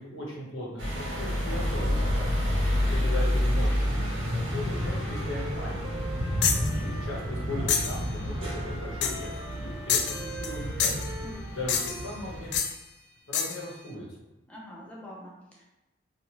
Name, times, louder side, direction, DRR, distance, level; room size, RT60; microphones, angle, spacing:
voice 1, 0.0-2.1 2.9-6.1 6.7-11.0 11.5-12.5 13.3-14.1, left 1 dB, 80° left, -4 dB, 1.0 m, -38 dB
sound 1, 0.8-12.6, equal, 80° right, 0.9 m, -29 dB
voice 2, 2.6-2.9 11.2-11.5 14.5-15.7, equal, 5° left, -5 dB, 0.5 m, -45 dB
Wind instrument woodwind instrument, 4.5-7.8 8.3-12.1, right 1 dB, 55° right, 1.1 m, -44 dB
sound 2, 6.4-6.7 7.7-8.0 9.0-9.3 9.9-10.5 10.8-11.1 11.7-12.1 12.5-12.7 13.3-13.6, left 7 dB, 60° left, 0.3 m, -27 dB
2.8 x 2.6 x 2.9 m, 1.0 s
head